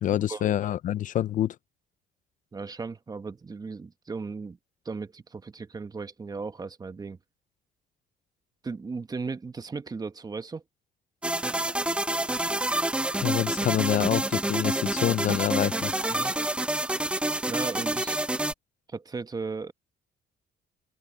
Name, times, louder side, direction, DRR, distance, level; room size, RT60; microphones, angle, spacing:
voice 1, 0.0-1.6 13.2-15.9, left 12 dB, 50° left, 0.5 m, -26 dB
voice 2, 2.5-4.6 4.8-7.2 8.6-10.6 16.1-16.4 17.5-18.2 18.9-19.7, right 4 dB, 20° right, 1.1 m, -36 dB
sound 1, 11.2-18.5, right 1 dB, 5° right, 0.6 m, -28 dB
cardioid pair, 110°, 17 cm